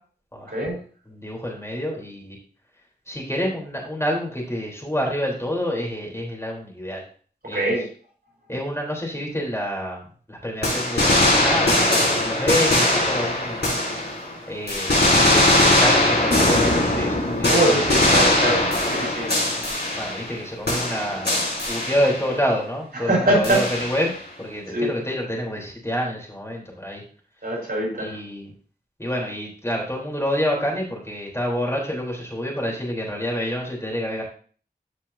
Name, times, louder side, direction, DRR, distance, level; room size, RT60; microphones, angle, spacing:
voice 1, 0.3-0.6 1.1-2.4 3.1-7.0 7.4-7.8 8.5-13.7 14.5-18.2 20.0-21.4 21.7-24.1 24.4-27.0 28.0-28.5 29.0-34.2, equal, 15° left, -2 dB, 3.6 m, -28 dB
voice 2, 7.5-7.8 17.5-18.6 18.9-19.3 23.0-23.6 24.7-24.9 27.4-28.2, right 1 dB, 65° right, -2 dB, 4.5 m, -22 dB
sound 1, 10.6-14.3 14.7-20.4 20.7-22.3 23.4-24.2, left 1 dB, 90° left, 4.8 m, -20 dB
14.5 x 5.5 x 2.7 m, 0.43 s
wide cardioid pair, 45°, 17 cm